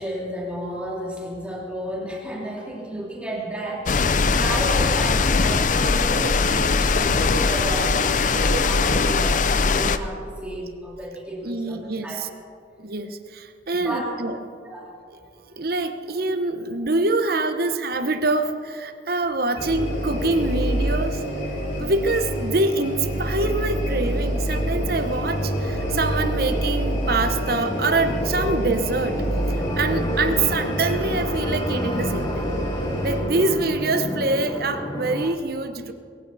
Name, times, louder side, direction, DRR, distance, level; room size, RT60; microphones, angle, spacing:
voice 1, 0.0-12.2 13.7-14.1 14.6-14.9 29.7-30.0, right 1 dB, 5° right, -4 dB, 2.7 m, -32 dB
sound 1, 3.9-10.0, left 4 dB, 45° left, 0.6 m, -20 dB
voice 2, 11.4-12.3 12.8-14.4 15.4-21.2 21.8-32.5 33.0-35.9, right 2 dB, 55° right, 9 dB, 1.0 m, -25 dB
sound 2, 19.6-33.2, equal, 80° left, 4.6 m, -26 dB
sound 3, 22.6-35.4, left 1 dB, 25° left, 1.0 m, -33 dB
22.0 x 15.5 x 4.1 m, 2.3 s
head